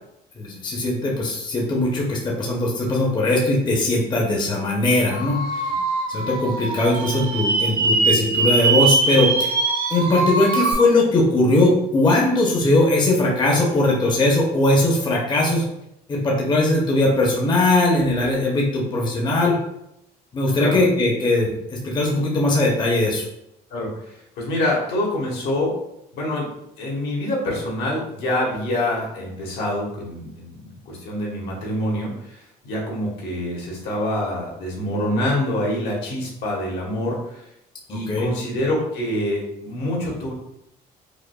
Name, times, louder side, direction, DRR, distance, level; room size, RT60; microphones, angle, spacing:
voice 1, 0.4-5.4 6.1-9.5 9.9-15.6 16.1-19.6 20.3-21.5 21.8-23.2 37.9-38.3, left 2 dB, 25° left, -2 dB, 0.7 m, -20 dB
sound 1, 5.1-10.7, right 3 dB, 65° right, 0.7 m, -22 dB
voice 2, 23.7-25.7 26.1-26.5 26.8-37.4 37.9-40.3, left 1 dB, 75° left, -3 dB, 1.3 m, -26 dB
4.9 x 2.1 x 2.3 m, 0.81 s
cardioid pair, 110°, 17 cm